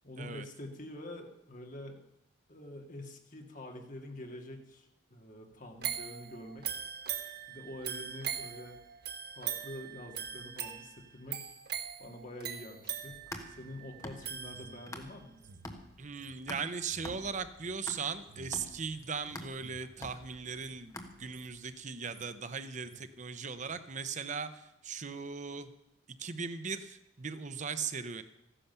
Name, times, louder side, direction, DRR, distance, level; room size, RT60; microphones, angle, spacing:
voice 1, 0.0-2.0 2.5-6.7 7.5-8.8 9.4-11.5 12.0-15.4, left 1 dB, 45° left, 3 dB, 2.1 m, -46 dB
sound 1, 5.8-15.1 15.5-15.6, right 9 dB, 60° right, 1.4 m, -41 dB
sound 2, 13.0-15.3 15.6-21.6, left 1 dB, 20° left, 1.5 m, -47 dB
sound 3, 14.4-19.2 19.5-19.9 20.4-20.8 21.1-21.5 21.9-22.4 22.7-23.1 23.6-23.8, right 3 dB, 75° right, 0.9 m, -56 dB
voice 2, 16.0-25.7 26.2-28.2, right 5 dB, 40° right, 11 dB, 0.7 m, -38 dB
14.5 x 10.0 x 6.8 m, 0.85 s
head